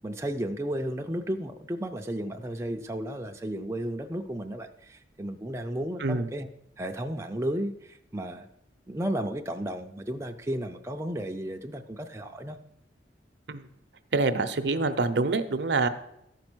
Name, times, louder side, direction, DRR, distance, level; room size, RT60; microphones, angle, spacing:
voice 1, 0.0-6.5 6.8-8.5 8.9-12.6, right 1 dB, 15° right, 4 dB, 0.5 m, -33 dB
voice 2, 14.1-15.9, right 3 dB, 65° right, 11 dB, 0.6 m, -26 dB
13.5 x 5.3 x 6.1 m, 0.81 s
head